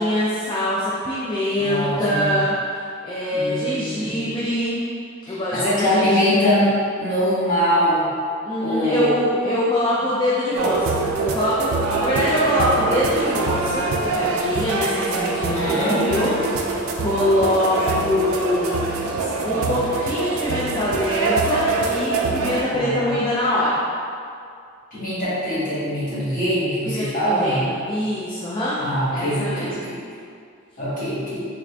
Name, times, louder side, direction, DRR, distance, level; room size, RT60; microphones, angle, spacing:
voice 1, 0.0-4.9 5.3-6.5 8.4-19.1 19.4-23.8 26.8-28.8 29.1-29.7, left 1 dB, 25° left, -8 dB, 0.4 m, -24 dB
voice 2, 1.6-2.4 3.3-4.3 5.3-6.7 7.0-8.1 8.6-9.1 15.4-16.1 19.1-19.8 22.7-23.1 24.9-27.8 28.8-30.0 30.8-31.4, equal, 40° left, -11 dB, 1.4 m, -23 dB
sound 1, 10.6-22.6, right 3 dB, 90° right, 0.4 m, -24 dB
3.7 x 2.5 x 3.2 m, 2.3 s
head